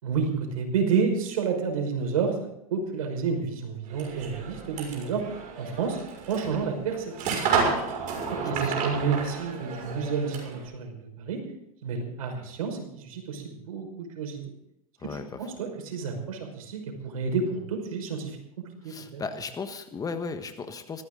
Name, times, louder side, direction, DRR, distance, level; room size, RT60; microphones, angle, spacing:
voice 1, 0.0-2.3 2.7-5.2 5.6-6.0 6.3-7.7 8.4-11.4 11.8-14.4 15.4-18.4 18.8-19.2, right 5 dB, 75° right, 3 dB, 5.6 m, -30 dB
sound 1, 3.9-10.7, right 5 dB, 45° right, 6.2 m, -31 dB
voice 2, 8.1-8.9 15.0-15.4 18.8-21.0, left 4 dB, 20° left, 8 dB, 1.4 m, -37 dB
19.5 x 15.0 x 4.0 m, 0.80 s
hypercardioid pair, 110°, 19 cm